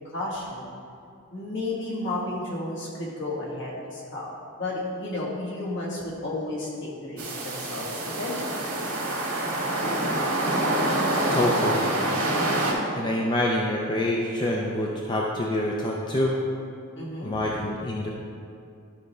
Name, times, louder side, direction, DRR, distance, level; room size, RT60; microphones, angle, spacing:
voice 1, 0.1-0.7 1.3-8.7 17.0-17.5, left 2 dB, 60° left, -5 dB, 1.8 m, -33 dB
sound 1, 7.2-12.7, right 1 dB, 85° right, 1.9 m, -26 dB
voice 2, 11.3-11.9 12.9-16.4 17.2-18.1, left 1 dB, 20° left, -2 dB, 0.5 m, -26 dB
11.5 x 5.7 x 3.2 m, 2.4 s
head